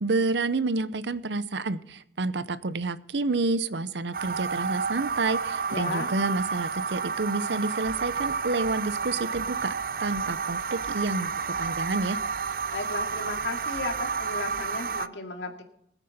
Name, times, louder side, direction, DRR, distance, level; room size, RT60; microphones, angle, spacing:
voice 1, 0.0-12.2, right 3 dB, 80° right, 15 dB, 0.8 m, -29 dB
sound 1, 4.1-15.1, right 5 dB, 50° right, 0.5 m, -31 dB
voice 2, 5.7-6.1 12.7-15.6, left 2 dB, 90° left, 4 dB, 2.3 m, -34 dB
21.0 x 9.1 x 4.3 m, 0.74 s
head